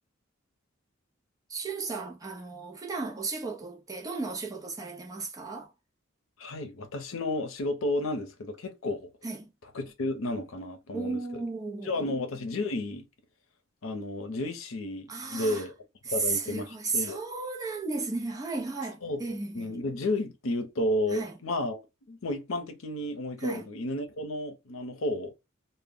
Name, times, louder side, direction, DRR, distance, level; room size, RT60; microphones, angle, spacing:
voice 1, 1.5-5.7 9.2-9.5 10.9-12.1 15.1-15.7 16.0-19.7 21.1-21.4 23.4-23.7, right 4 dB, 20° right, 0.5 m, -34 dB
voice 2, 6.4-9.1 9.7-11.4 11.8-13.1 13.8-15.7 16.0-17.2 19.0-19.2 19.5-21.8 22.1-25.3, left 1 dB, 85° left, 0.6 m, -32 dB
2.1 x 2.0 x 3.5 m
head